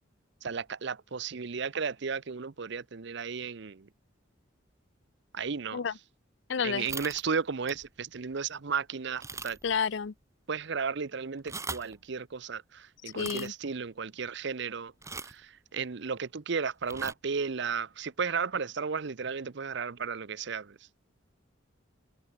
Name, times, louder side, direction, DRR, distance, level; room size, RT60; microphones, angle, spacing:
voice 1, 0.4-3.9 5.3-5.9 6.6-9.6 10.5-14.9 15.2-20.8, right 5 dB, 60° right, 0.7 m, -34 dB
voice 2, 6.5-6.9 9.6-10.1 13.1-13.5, left 6 dB, 65° left, 0.5 m, -30 dB
sound 1, 6.8-7.3 7.7-7.9 8.3-8.4 9.2-9.8 10.0-10.1 11.3-11.9 13.1-13.5 15.0-15.4 16.8-17.1, right 4 dB, 15° right, 2.9 m, -40 dB
head